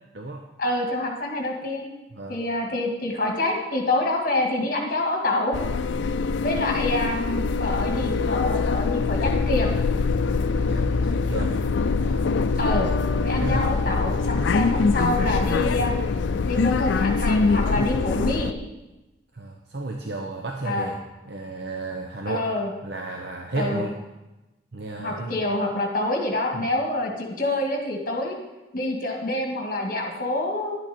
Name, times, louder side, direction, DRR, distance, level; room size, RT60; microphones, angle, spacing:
voice 1, 0.6-1.9 2.3-5.6 6.4-9.7 12.6-12.9 13.2-15.9 16.5-18.5 20.6-20.9 22.3-22.7 23.6-23.8 25.0-28.4 28.7-30.8, left 2 dB, 50° left, 1 dB, 1.9 m, -26 dB
sound 1, 5.5-18.5, left 4 dB, 75° left, 0.4 m, -23 dB
voice 2, 10.5-11.7 12.0-12.3 13.4-13.7 19.3-21.0 21.3-22.5 22.8-23.9 24.7-25.4 26.5-26.6, right 2 dB, 60° right, 2 dB, 0.8 m, -33 dB
11.0 x 9.0 x 4.3 m, 1.0 s
head